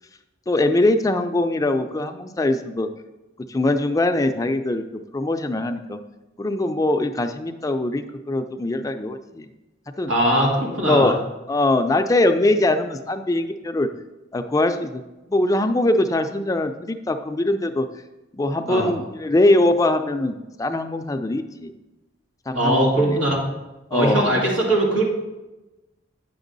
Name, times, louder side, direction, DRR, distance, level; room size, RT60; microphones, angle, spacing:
voice 1, 0.5-2.9 3.5-6.0 6.4-9.5 10.0-10.1 10.7-11.2 11.5-13.9 14.3-15.0 15.3-17.9 18.3-21.7 22.5-23.2 23.9-24.3, left 2 dB, 20° left, 7 dB, 0.4 m, -22 dB
voice 2, 10.1-11.1 18.7-18.9 22.5-23.4 23.9-25.1, right 1 dB, 90° right, -2 dB, 2.3 m, -20 dB
9.0 x 6.1 x 3.9 m, 1.0 s
head